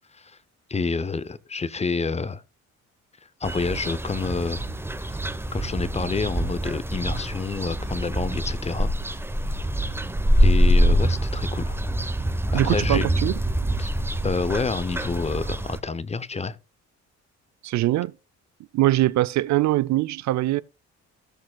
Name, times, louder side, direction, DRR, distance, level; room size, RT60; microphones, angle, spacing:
voice 1, 0.7-2.4 3.4-4.7 5.0-5.2 5.5-8.9 10.4-11.8 12.5-13.0 13.8-13.9 14.2-16.6, left 4 dB, 20° left, 0.6 m, -28 dB
sound 1, 3.4-15.8, equal, 10° right, 0.8 m, -24 dB
voice 2, 12.5-13.3 17.6-18.1 18.7-20.6, right 16 dB, 65° right, 0.4 m, -22 dB
17.0 x 6.4 x 2.2 m
cardioid pair, 90°, 30 cm